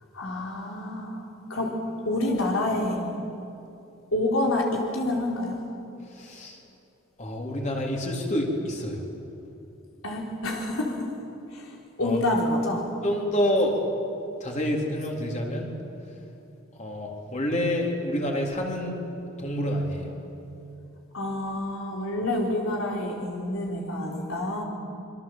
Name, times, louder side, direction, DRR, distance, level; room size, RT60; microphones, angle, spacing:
voice 1, 0.1-1.7 2.1-3.0 4.1-5.6 10.0-11.0 11.5-11.7 12.0-12.8 21.1-24.6, left 1 dB, 75° left, -1 dB, 4.0 m, -27 dB
voice 2, 6.1-6.6 7.2-9.0 12.0-12.2 13.0-13.8 14.4-15.7 16.7-18.9 19.4-20.1, equal, 35° left, 0 dB, 3.8 m, -28 dB
26.5 x 23.5 x 7.6 m, 2.7 s
head